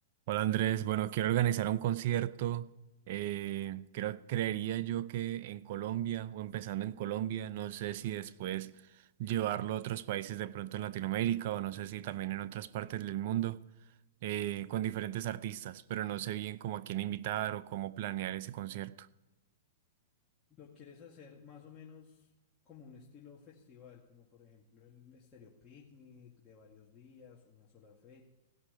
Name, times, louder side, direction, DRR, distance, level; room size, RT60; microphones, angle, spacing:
voice 1, 0.3-2.7 3.1-8.8 9.2-13.6 14.2-19.1, right 12 dB, 55° right, 0.6 m, -34 dB
voice 2, 20.5-22.3 22.6-28.2, left 6 dB, 25° left, 2.1 m, -55 dB
16.5 x 5.8 x 9.9 m
hypercardioid pair, 115°, 0 cm